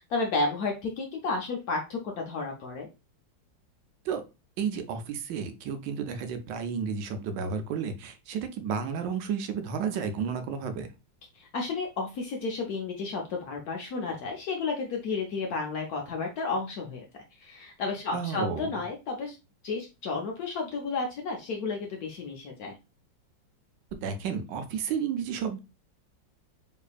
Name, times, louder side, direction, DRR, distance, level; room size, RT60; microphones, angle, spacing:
voice 1, 0.1-2.9 11.3-17.1 17.4-19.4 19.6-22.8, left 3 dB, 65° left, 1 dB, 0.9 m, -32 dB
voice 2, 4.6-10.9 18.1-18.7 23.9-25.6, right 6 dB, 75° right, 8 dB, 1.2 m, -32 dB
3.6 x 3.3 x 2.3 m, 0.27 s
omnidirectional pair, 2.1 m